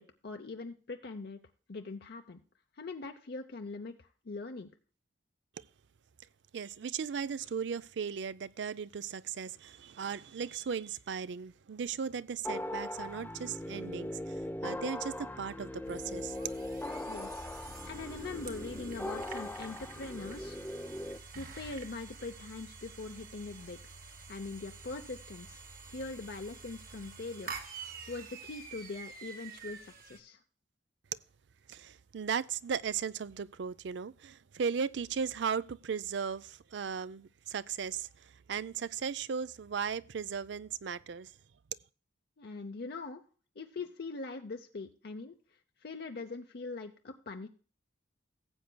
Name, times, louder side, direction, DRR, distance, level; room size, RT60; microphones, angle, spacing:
voice 1, 0.0-1.4 1.7-2.4 2.7-4.7 17.1-17.5 17.9-20.6 21.4-23.8 24.3-25.6 25.9-30.4 42.4-43.2 43.6-45.3 45.8-47.5, left 3 dB, 55° left, 0.7 m, -42 dB
voice 2, 6.5-16.5 31.7-41.3, right 6 dB, 65° right, 0.4 m, -37 dB
sound 1, 12.4-21.2, left 1 dB, 10° left, 0.5 m, -40 dB
sound 2, 15.8-30.2, right 5 dB, 50° right, 1.5 m, -48 dB
17.0 x 8.0 x 2.2 m
head